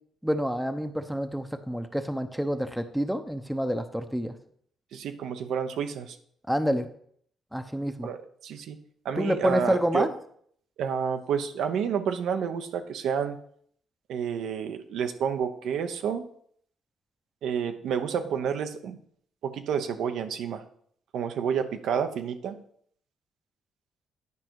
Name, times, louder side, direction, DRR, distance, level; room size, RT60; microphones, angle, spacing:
voice 1, 0.2-4.3 6.5-6.9 7.5-8.1 9.2-10.1, equal, ahead, 8 dB, 0.8 m, -28 dB
voice 2, 4.9-6.2 8.0-8.2 8.4-8.8 9.0-10.1 10.8-13.4 14.1-16.3 17.4-19.0 19.4-20.6 21.1-22.6, right 7 dB, 80° right, 7 dB, 0.8 m, -29 dB
9.7 x 5.1 x 4.7 m, 0.63 s
cardioid pair, 90°, 0 cm